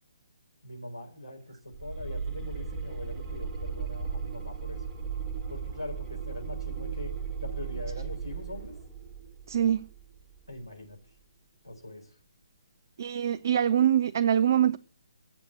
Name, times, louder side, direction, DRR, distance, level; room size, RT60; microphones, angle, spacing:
voice 1, 0.6-4.8 5.5-7.2 7.4-8.7 10.5-11.0 11.6-12.1, left 1 dB, 80° left, 4.3 m, -41 dB
sound 1, 1.7-10.6, right 6 dB, 10° right, 1.3 m, -36 dB
voice 2, 9.5-9.9 13.0-14.8, right 10 dB, 40° right, 0.4 m, -24 dB
8.4 x 8.0 x 7.7 m
figure-of-eight pair, 140°, 2 cm